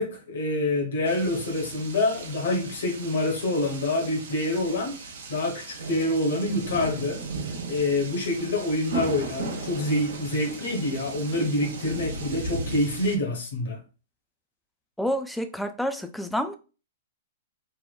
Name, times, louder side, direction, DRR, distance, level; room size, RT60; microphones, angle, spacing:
voice 1, 0.0-5.0 5.3-7.2 7.7-13.8, left 1 dB, 65° left, 1.0 m, -26 dB
sound 1, 1.0-13.2, right 3 dB, 65° right, 0.6 m, -37 dB
voice 2, 15.0-16.6, equal, ahead, 0.3 m, -28 dB
3.4 x 2.1 x 2.2 m
figure-of-eight pair, 110°, 0 cm